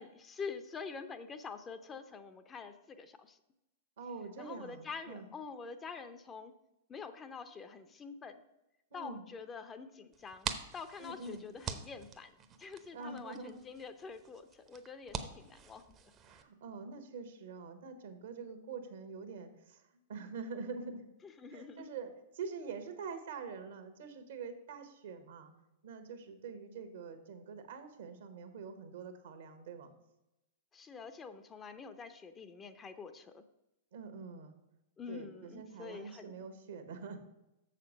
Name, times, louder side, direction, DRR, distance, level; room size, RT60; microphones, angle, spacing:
voice 1, 0.0-3.4 4.4-6.5 6.9-8.4 8.9-10.5 10.7-12.3 12.6-16.0 21.2-21.9 30.7-33.4 35.0-36.3, left 5 dB, 20° left, 10 dB, 0.7 m, -46 dB
voice 2, 4.0-5.3 8.9-9.2 11.0-11.4 12.9-13.6 16.2-19.8 20.1-21.1 21.5-25.5 25.8-29.9 33.9-34.5 35.1-37.2, right 5 dB, 65° right, 8 dB, 1.2 m, -45 dB
sound 1, 10.1-16.4, right 7 dB, 30° right, 0.8 m, -45 dB
7.0 x 6.6 x 5.2 m, 0.92 s
figure-of-eight pair, 105°, 0 cm